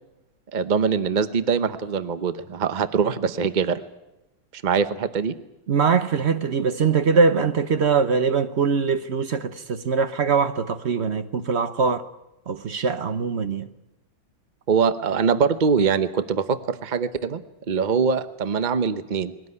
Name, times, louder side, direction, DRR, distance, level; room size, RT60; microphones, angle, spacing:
voice 1, 0.5-3.8 4.5-5.3 14.7-17.4 17.7-19.3, right 6 dB, 65° right, 0.4 m, -23 dB
voice 2, 5.7-12.1 12.5-13.7, right 5 dB, 50° right, 0.8 m, -22 dB
21.0 x 17.5 x 9.7 m
omnidirectional pair, 2.2 m